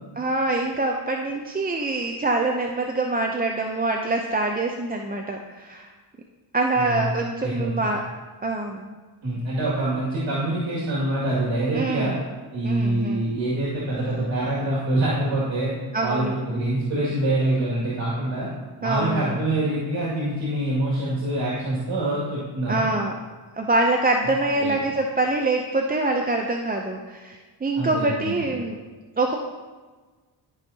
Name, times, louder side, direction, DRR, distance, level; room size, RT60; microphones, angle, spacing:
voice 1, 0.2-5.9 6.5-8.0 8.4-9.0 11.7-12.2 12.6-13.2 15.9-16.3 18.8-19.4 22.7-23.1 23.5-28.8 29.2-29.4, right 2 dB, 20° right, 2 dB, 0.6 m, -25 dB
voice 2, 7.4-7.9 9.2-12.2 12.5-15.7 16.0-18.5 18.8-22.8 24.6-24.8 27.7-28.5, right 1 dB, 70° right, -6 dB, 2.3 m, -25 dB
13.0 x 5.4 x 2.8 m, 1.4 s
cardioid pair, 85°, 48 cm